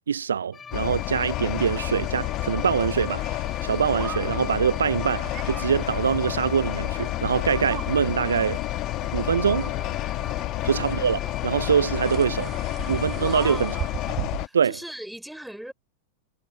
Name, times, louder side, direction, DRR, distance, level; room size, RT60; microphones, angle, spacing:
voice 1, 0.1-8.6 9.1-9.7 10.6-12.5 12.9-13.7 14.5-14.7, right 7 dB, 70° right, 0.6 m, -24 dB
sound 1, 0.5-14.1, left 6 dB, 20° left, 3.1 m, -42 dB
sound 2, 0.7-14.5, left 19 dB, 40° left, 1.7 m, -30 dB
sound 3, 1.5-14.4, right 13 dB, 30° right, 4.4 m, -40 dB
voice 2, 13.1-13.8 14.4-15.7, right 1 dB, ahead, 5.3 m, -38 dB
figure-of-eight pair, 90°, 0 cm